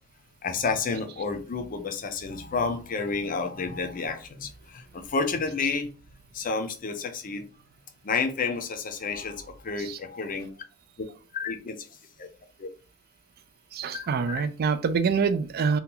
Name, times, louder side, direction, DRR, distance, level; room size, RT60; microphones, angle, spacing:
voice 1, 0.4-5.9 6.3-7.5 8.0-10.5 11.3-11.8 12.2-12.3 12.6-12.7 13.9-14.4, left 4 dB, 40° left, 0.5 m, -30 dB
voice 2, 13.7-15.8, right 5 dB, 45° right, 0.4 m, -26 dB
2.8 x 2.2 x 3.7 m
head